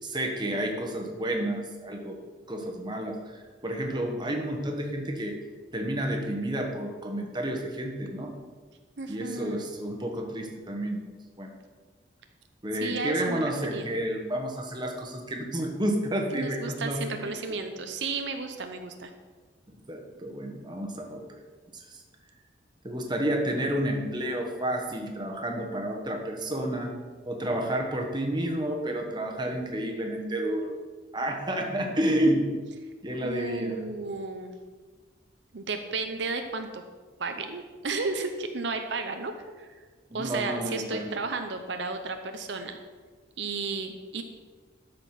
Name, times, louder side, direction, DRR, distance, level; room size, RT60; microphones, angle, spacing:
voice 1, 0.0-2.2 2.5-5.4 5.7-8.3 9.1-11.0 11.4-11.5 12.6-17.3 19.9-21.4 21.7-22.0 22.8-27.0 27.2-30.7 31.1-32.5 33.0-33.8 40.1-41.2, right 1 dB, 25° right, 2 dB, 1.3 m, -30 dB
voice 2, 9.0-9.6 12.7-13.4 13.7-13.9 16.3-19.1 33.2-34.5 35.5-36.8 37.2-39.3 39.6-39.7 40.1-42.8 43.4-44.2, right 3 dB, 75° right, 6 dB, 0.7 m, -33 dB
12.5 x 5.2 x 5.9 m, 1.5 s
head